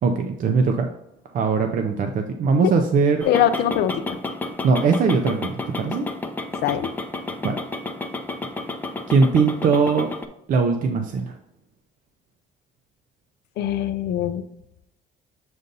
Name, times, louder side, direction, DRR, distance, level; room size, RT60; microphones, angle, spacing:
voice 1, 0.0-0.9 1.3-3.3 4.6-6.0 7.4-7.6 9.1-10.1 10.5-11.4, right 4 dB, 50° right, 4 dB, 0.6 m, -20 dB
voice 2, 3.2-4.2 6.6-6.9 13.6-14.4, left 10 dB, 75° left, 10 dB, 0.6 m, -22 dB
sound 1, 3.2-10.3, left 2 dB, 10° left, 0.6 m, -31 dB
7.8 x 2.6 x 5.3 m, 0.82 s
cardioid pair, 110°, 17 cm